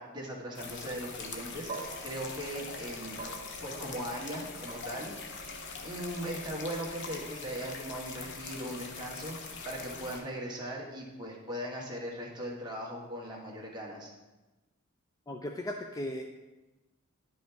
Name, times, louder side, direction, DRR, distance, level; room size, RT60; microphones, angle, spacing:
voice 1, 0.0-3.2 3.6-5.4 5.8-14.1, equal, 20° right, -3 dB, 1.6 m, -39 dB
sound 1, 0.5-10.2, left 4 dB, 55° left, 0.8 m, -43 dB
sound 2, 1.7-10.0, right 4 dB, 40° right, 0.8 m, -49 dB
voice 2, 15.3-16.2, left 1 dB, 15° left, 3 dB, 0.4 m, -36 dB
10.5 x 5.3 x 3.4 m, 1.1 s
head